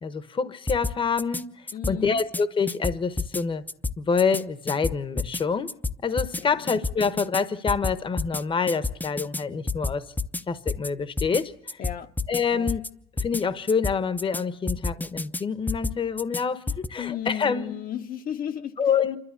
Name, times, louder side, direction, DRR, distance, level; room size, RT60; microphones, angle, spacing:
voice 1, 0.0-3.6 4.0-5.7 6.0-10.1 10.5-11.8 12.3-12.8 13.2-17.7 18.8-19.2, left 5 dB, 30° left, 1.1 m, -26 dB
sound 1, 0.7-1.4 1.7-2.4 2.7-3.4 3.7-4.4 4.7-5.4 5.7-6.4 6.7-7.4 7.7-8.4 8.7-9.4 9.7-10.4 10.7-10.9 11.2-11.4 11.7-12.4 12.7-12.9 13.2-13.4 13.7-14.4 14.7-15.4 15.7-16.4 16.7-16.9, left 3 dB, 10° left, 0.7 m, -29 dB
voice 2, 1.7-2.2 6.4-6.5 11.8-12.1 12.5-12.7 17.0-18.8, left 10 dB, 55° left, 1.1 m, -34 dB
27.0 x 12.5 x 8.2 m
cardioid pair, 110°, 17 cm